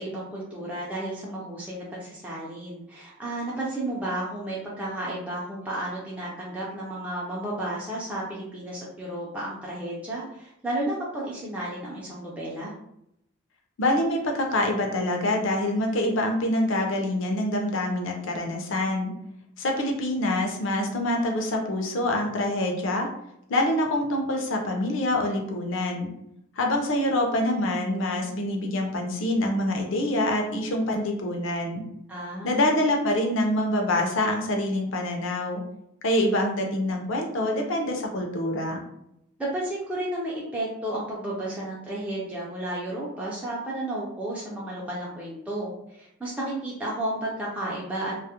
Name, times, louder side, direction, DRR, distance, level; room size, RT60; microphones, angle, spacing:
voice 1, 0.0-12.7 32.1-32.7 39.4-48.2, right 1 dB, 5° right, -6 dB, 0.3 m, -32 dB
voice 2, 13.8-19.1 19.6-23.1 23.5-26.1 26.6-31.8 32.4-35.6 36.0-38.8, left 1 dB, 65° left, 2 dB, 0.5 m, -25 dB
2.2 x 2.0 x 2.8 m, 0.77 s
head